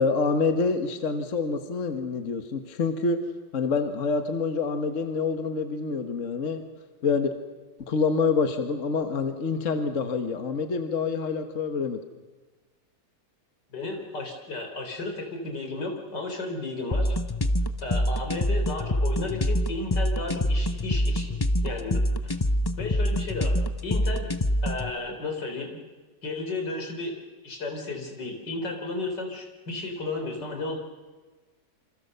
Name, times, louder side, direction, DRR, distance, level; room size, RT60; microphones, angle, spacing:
voice 1, 0.0-3.2 3.5-6.6 7.0-7.3 7.8-12.0, left 4 dB, 45° left, 7 dB, 1.6 m, -26 dB
voice 2, 13.7-17.2 17.8-21.4 21.6-22.4 22.8-24.3 24.6-25.8 26.2-27.1 27.4-30.8, left 2 dB, 80° left, 4 dB, 4.7 m, -33 dB
sound 1, 16.9-24.9, equal, 20° left, 0.6 m, -25 dB
27.5 x 26.5 x 6.8 m, 1.3 s
omnidirectional pair, 1.8 m